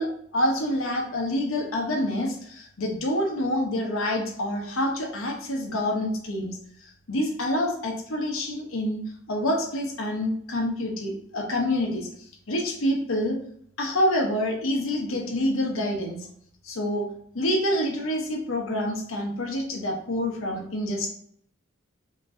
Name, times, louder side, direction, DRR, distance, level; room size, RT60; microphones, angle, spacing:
voice 1, 0.0-12.1 12.5-13.4 13.8-16.3 16.6-17.1 17.3-21.1, left 1 dB, 90° left, 1 dB, 1.0 m, -27 dB
5.2 x 2.9 x 2.7 m, 0.66 s
head